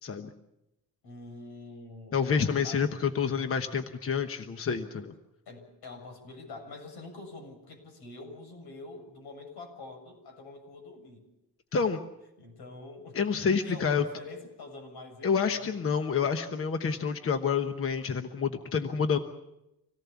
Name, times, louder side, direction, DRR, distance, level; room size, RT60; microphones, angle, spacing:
voice 1, 1.0-3.2 5.5-11.3 12.4-16.2, left 2 dB, 80° left, 4 dB, 7.2 m, -46 dB
voice 2, 2.1-5.1 11.7-12.0 13.1-14.0 15.2-19.2, left 6 dB, 35° left, 7 dB, 1.1 m, -28 dB
26.0 x 18.0 x 7.2 m, 0.91 s
wide cardioid pair, 170°, 38 cm